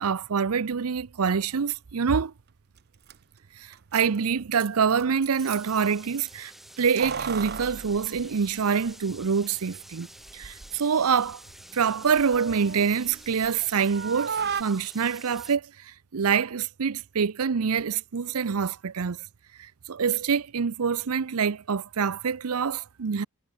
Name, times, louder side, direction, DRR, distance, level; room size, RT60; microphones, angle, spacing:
voice 1, 0.0-2.3 3.6-6.5 6.8-10.1 10.3-11.4 11.7-19.2 19.6-23.2, right 6 dB, 80° right, 0.6 m, -26 dB
Keys jangling, 2.8-2.9 3.1-3.2 3.7-5.9 6.8-8.9 9.2-9.3 10.2-10.8 11.1-13.6 13.9-14.6, right 6 dB, 45° right, 0.8 m, -36 dB
sound 1, 5.4-15.6, equal, ahead, 7.0 m, -49 dB
head